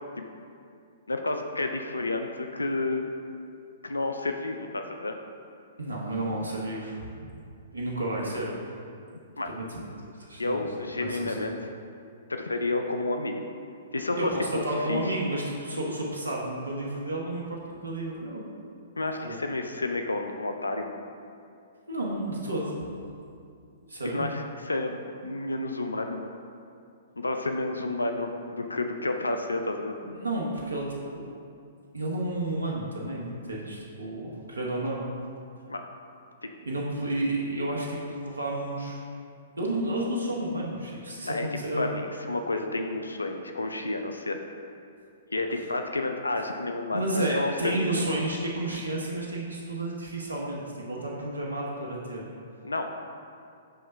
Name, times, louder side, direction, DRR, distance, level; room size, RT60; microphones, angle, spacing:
voice 1, 1.1-3.1 3.8-5.2 9.4-9.5 10.4-11.6 12.3-13.5 13.9-14.6 14.9-15.0 19.0-21.0 24.0-25.0 25.2-26.4 27.2-29.9 35.7-35.8 36.4-36.5 41.2-44.4 45.3-47.9 52.6-52.9, left 2 dB, 90° left, 5 dB, 0.4 m, -30 dB
voice 2, 5.8-7.1 7.7-8.5 9.5-9.9 10.2-10.6 11.0-11.6 14.2-18.4 19.2-19.4 21.9-22.8 23.9-24.4 30.0-31.3 31.9-35.0 36.6-39.0 39.6-41.9 46.9-52.3, right 1 dB, 85° right, -3 dB, 0.9 m, -31 dB
5.6 x 3.2 x 5.5 m, 2.4 s
hypercardioid pair, 120°, 0 cm